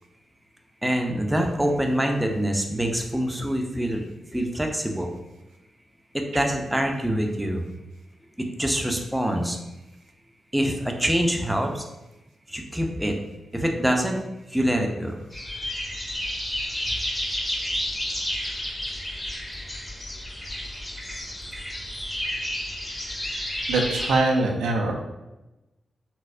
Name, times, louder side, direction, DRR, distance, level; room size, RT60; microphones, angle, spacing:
voice 1, 0.8-4.1 4.3-5.2 6.1-7.6 8.4-9.6 10.5-11.8 12.5-13.2 13.5-14.2 14.5-15.2, equal, 5° right, 2 dB, 0.5 m, -25 dB
sound 1, 15.3-24.2, left 1 dB, 20° left, 0.9 m, -31 dB
voice 2, 23.7-24.9, right 2 dB, 85° right, 1 dB, 0.4 m, -23 dB
4.0 x 2.0 x 2.5 m, 1.0 s
supercardioid pair, 45°, 0 cm